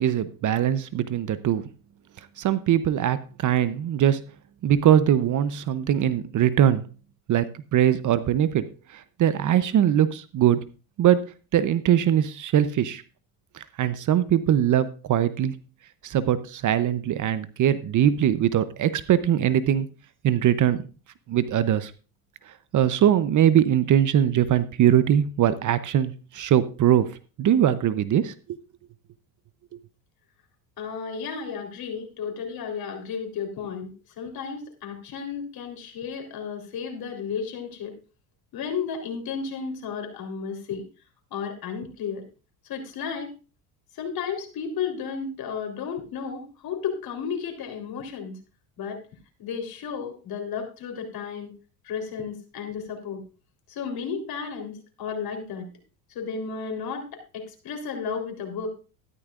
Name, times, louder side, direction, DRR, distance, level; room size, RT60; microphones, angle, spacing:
voice 1, 0.0-1.6 2.4-4.2 4.6-6.8 7.3-8.6 8.9-10.6 11.0-13.0 13.5-15.6 16.0-19.9 20.2-20.8 21.3-21.9 22.5-27.1 27.4-28.3, right 10 dB, 40° right, 14 dB, 0.8 m, -21 dB
voice 2, 30.8-33.9 34.2-37.9 38.5-40.9 41.3-42.2 42.6-43.3 43.9-48.4 48.8-49.0 49.4-51.5 51.8-53.2 53.7-55.7 56.2-58.7, left 6 dB, 50° left, 3 dB, 3.7 m, -33 dB
13.5 x 12.0 x 2.5 m, 0.34 s
supercardioid pair, 100°, 46 cm